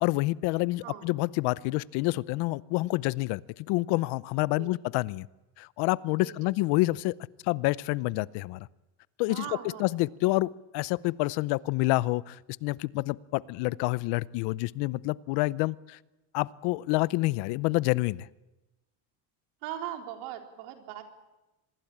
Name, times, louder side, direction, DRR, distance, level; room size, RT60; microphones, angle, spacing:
voice 1, 0.0-5.3 5.6-7.2 7.4-8.7 9.2-9.4 9.8-16.0 16.3-18.3, left 20 dB, 65° left, 20 dB, 0.8 m, -28 dB
voice 2, 6.2-6.5 9.3-9.9 19.6-21.0, right 11 dB, 80° right, 4 dB, 4.1 m, -39 dB
25.5 x 20.0 x 8.7 m, 1.0 s
cardioid pair, 150°, 43 cm